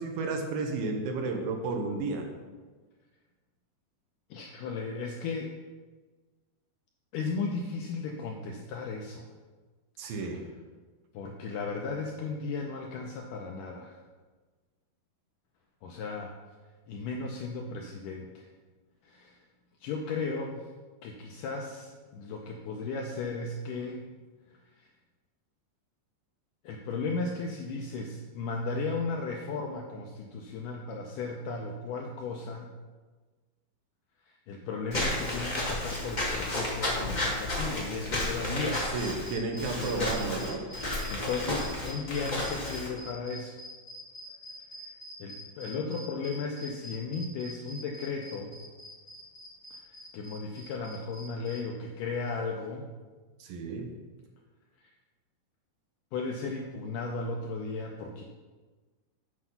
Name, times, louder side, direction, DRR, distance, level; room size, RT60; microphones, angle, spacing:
voice 1, 0.0-2.3 10.0-10.4 38.9-40.6 53.4-53.9, right 3 dB, 75° right, 3 dB, 2.5 m, -32 dB
voice 2, 4.3-5.6 7.1-9.3 11.1-14.0 15.8-16.3 16.9-18.5 19.0-19.4 19.8-20.7 21.0-24.1 24.8-24.9 26.6-32.7 34.3-39.0 39.8-40.2 40.7-40.8 41.1-43.5 45.2-48.6 49.7-49.8 50.1-52.9 56.1-58.2, left 4 dB, 90° left, 1 dB, 1.9 m, -35 dB
Walk footsteps / Squeak, 34.9-42.9, left 1 dB, 55° left, 0.4 m, -32 dB
sound 1, 38.7-51.6, equal, 20° left, 1.7 m, -45 dB
8.0 x 6.1 x 5.6 m, 1.3 s
omnidirectional pair, 4.5 m